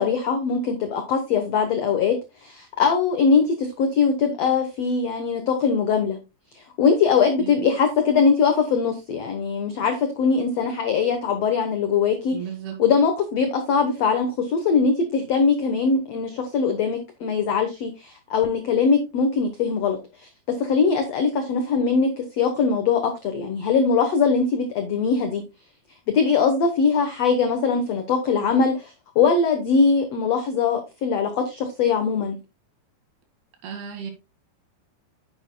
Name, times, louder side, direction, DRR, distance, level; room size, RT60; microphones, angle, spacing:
voice 1, 0.0-2.1 2.4-6.2 6.5-12.4 12.8-20.3 20.6-25.4 26.1-32.4, left 5 dB, 80° left, 1.4 m, -21 dB
voice 2, 12.3-12.8 33.6-34.1, right 8 dB, 85° right, 4.1 m, -34 dB
9.9 x 8.8 x 2.3 m
omnidirectional pair, 4.6 m